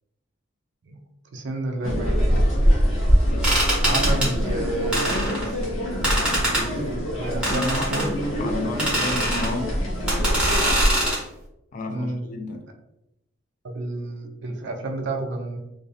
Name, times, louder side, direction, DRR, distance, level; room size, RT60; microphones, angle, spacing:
voice 1, 1.3-2.4 3.8-5.4 7.1-8.1 11.9-12.2 13.6-15.6, right 2 dB, 60° right, 2 dB, 0.4 m, -30 dB
sound 1, 1.8-11.1, equal, 85° left, 0.9 m, -23 dB
sound 2, 3.4-4.3 4.9-5.5 6.0-6.7 7.4-8.1 8.8-9.5 10.1-11.2, right 1 dB, 5° right, 0.8 m, -24 dB
voice 2, 7.3-7.9 8.4-9.7 11.7-12.6, left 2 dB, 40° left, 4 dB, 0.4 m, -32 dB
2.5 x 2.0 x 2.7 m, 0.87 s
head